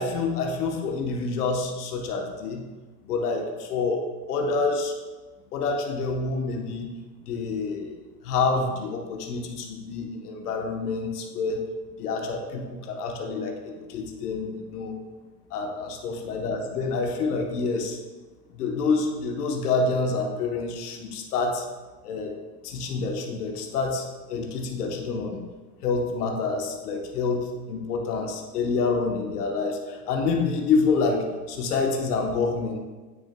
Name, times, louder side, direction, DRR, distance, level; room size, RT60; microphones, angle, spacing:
voice 1, 0.0-2.6 3.1-4.0 4.3-4.9 5.5-6.9 7.3-7.9 8.2-11.6 12.0-15.0 15.5-18.0 18.5-21.6 22.0-22.3 22.6-25.4 25.8-32.8, left 4 dB, 85° left, 2 dB, 1.2 m, -27 dB
8.7 x 6.2 x 2.2 m, 1.3 s
hypercardioid pair, 110°, 45 cm